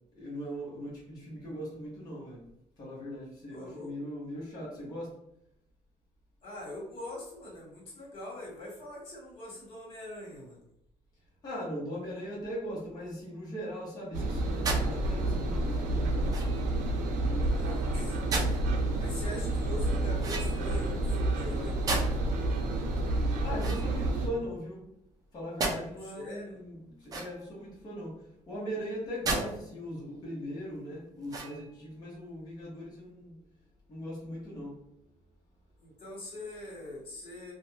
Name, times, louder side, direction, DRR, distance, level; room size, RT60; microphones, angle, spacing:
voice 1, 0.2-2.4 2.8-5.2 11.4-16.3 23.4-24.8 25.3-28.1 28.5-33.4 33.9-34.8, equal, 30° left, -6 dB, 0.9 m, -39 dB
voice 2, 3.5-3.9 6.4-10.6 17.5-18.6 19.0-22.1 26.0-26.6 35.8-37.5, left 1 dB, 45° left, -5 dB, 1.4 m, -43 dB
Engine, 14.1-24.3, right 2 dB, 90° right, 0.5 m, -29 dB
sound 1, 14.6-14.9 16.3-16.7 18.3-18.6 20.2-20.8 21.9-22.3 23.5-24.4 25.6-25.8 27.0-27.6 29.2-29.5 30.0-30.1 31.2-31.8, right 3 dB, 30° right, 0.4 m, -33 dB
2.6 x 2.1 x 3.1 m, 0.78 s
cardioid pair, 160°, 13 cm